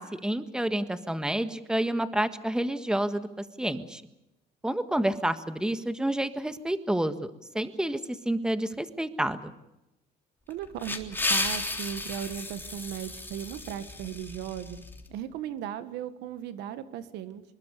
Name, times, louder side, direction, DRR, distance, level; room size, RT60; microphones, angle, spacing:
voice 1, 0.0-4.0 4.6-9.5, right 1 dB, 5° right, 10 dB, 1.6 m, -29 dB
sound 1, 10.5-15.0, left 2 dB, 10° left, 3.5 m, -33 dB
voice 2, 10.5-14.8 15.1-17.4, right 10 dB, 90° right, 12 dB, 1.7 m, -37 dB
24.5 x 21.0 x 6.8 m, 0.92 s
cardioid pair, 110°, 17 cm